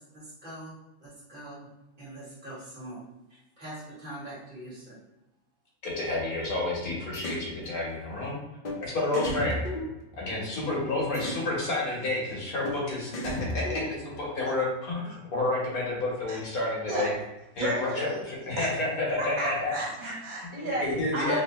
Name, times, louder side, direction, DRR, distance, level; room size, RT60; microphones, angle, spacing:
voice 1, 0.0-1.7 2.0-3.0 3.3-5.0, right 1 dB, 35° right, -8 dB, 1.6 m, -43 dB
voice 2, 5.8-8.4 8.8-9.6 10.2-13.1 13.5-17.1 17.5-19.7 20.8-21.4, left 2 dB, 80° left, -4 dB, 1.7 m, -30 dB
sound 1, 7.1-7.5 8.6-8.8 9.1-10.5 11.1-11.5 12.6-12.8 13.1-14.2, left 1 dB, 60° left, 0.4 m, -34 dB
voice 3, 17.6-18.2 18.6-18.7 19.2-21.4, right 1 dB, 70° right, -3 dB, 1.4 m, -32 dB
3.5 x 2.8 x 3.1 m, 0.97 s
omnidirectional pair, 1.5 m